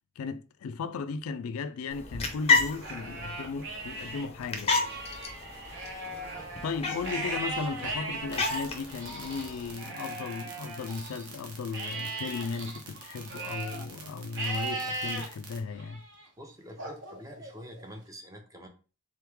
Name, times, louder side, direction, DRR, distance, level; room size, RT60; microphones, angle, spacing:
voice 1, 0.2-4.9 6.6-16.0, left 4 dB, 85° left, 0.3 m, -36 dB
sound 1, 1.9-9.7, left 4 dB, 30° left, 0.6 m, -32 dB
Livestock farm animals working animals, 2.7-4.3 4.7-11.3 11.7-13.8 14.3-15.3 15.8-16.2 16.8-17.9, right 2 dB, 60° right, 1.0 m, -38 dB
sound 2, 8.3-15.6, right 5 dB, 90° right, 1.1 m, -48 dB
voice 2, 16.4-18.7, equal, 15° right, 0.6 m, -46 dB
3.8 x 3.1 x 3.4 m
head